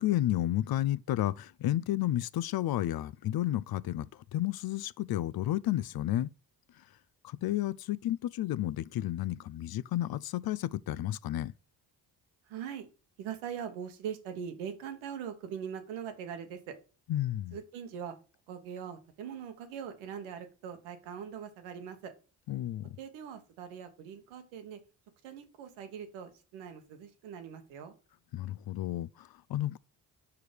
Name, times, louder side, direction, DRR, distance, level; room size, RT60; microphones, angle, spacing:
voice 1, 0.0-6.3 7.2-11.5 17.1-17.6 22.5-23.0 28.3-29.8, left 14 dB, 55° left, 0.5 m, -32 dB
voice 2, 12.5-12.9 13.2-16.8 17.5-18.1 18.5-22.1 23.0-24.8 25.2-27.9, right 8 dB, 90° right, 1.2 m, -41 dB
4.8 x 4.7 x 5.1 m
supercardioid pair, 55°, 46 cm